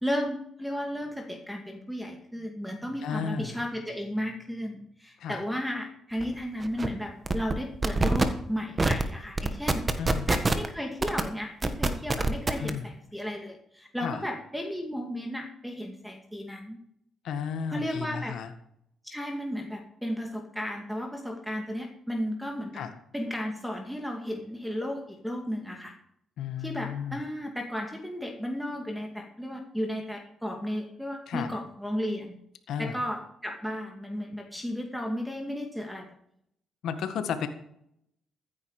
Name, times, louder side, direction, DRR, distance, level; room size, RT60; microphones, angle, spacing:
voice 1, 0.0-9.8 10.3-16.8 17.7-18.4 19.0-22.8 23.1-25.9 26.6-32.4 32.8-36.1, equal, ahead, 3 dB, 2.3 m, -34 dB
voice 2, 3.0-3.6 5.2-5.4 10.0-10.3 12.6-12.9 14.0-14.2 17.2-18.5 22.8-22.9 26.4-27.2 31.3-31.5 32.7-33.0 36.8-37.5, left 7 dB, 75° left, 9 dB, 1.7 m, -33 dB
sound 1, 6.2-6.3 6.6-6.9 7.3-7.5 7.8-8.2 8.8-9.0 9.4-10.7 11.0-11.2 11.6-12.7, right 3 dB, 25° right, 1.5 m, -24 dB
14.5 x 9.7 x 4.9 m, 0.72 s
cardioid pair, 90°, 0 cm